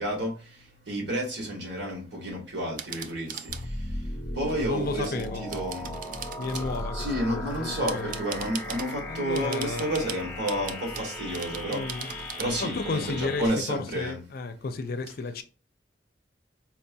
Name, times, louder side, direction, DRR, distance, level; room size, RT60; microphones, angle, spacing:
voice 1, 0.0-14.2, right 1 dB, 70° right, 1.5 m, -31 dB
sound 1, 2.8-3.7 4.4-6.9 7.5-9.0 9.3-12.4, right 8 dB, 45° right, 0.3 m, -40 dB
sound 2, 3.5-13.5, left 1 dB, 15° left, 0.9 m, -38 dB
sound 3, 3.6-5.0 6.6-8.0, equal, 15° right, 0.7 m, -38 dB
voice 2, 4.6-5.5 6.4-8.2 9.1-9.9 11.7-12.1 12.6-15.4, left 3 dB, 55° left, 0.5 m, -33 dB
4.4 x 2.7 x 2.2 m
head